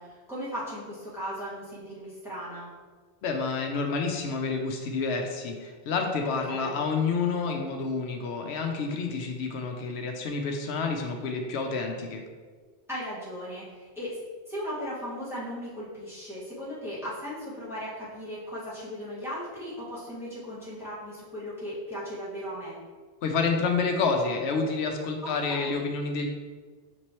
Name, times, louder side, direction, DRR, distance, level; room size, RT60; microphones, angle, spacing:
voice 1, 0.0-2.7 6.2-6.8 12.9-14.2 14.5-22.8 25.2-25.9, equal, ahead, -9 dB, 1.4 m, -37 dB
voice 2, 3.2-12.2 23.2-26.3, left 4 dB, 85° left, 3 dB, 0.9 m, -29 dB
5.9 x 3.1 x 2.9 m, 1.5 s
omnidirectional pair, 1.1 m